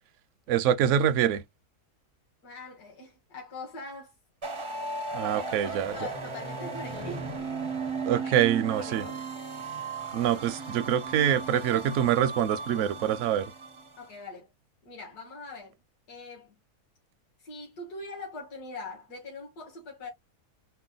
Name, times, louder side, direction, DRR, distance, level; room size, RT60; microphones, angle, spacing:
voice 1, 0.5-1.4 5.1-5.9 8.0-9.0 10.1-13.5, right 10 dB, 70° right, 0.7 m, -25 dB
voice 2, 2.4-4.1 4.5-4.7 5.1-7.7 8.1-8.4 8.7-9.2 14.0-14.5 14.9-15.7 16.1-16.6 17.4-20.1, left 2 dB, 75° left, 2.0 m, -42 dB
sound 1, 4.4-14.1, right 4 dB, 35° right, 0.5 m, -36 dB
4.6 x 2.2 x 3.8 m
omnidirectional pair, 1.7 m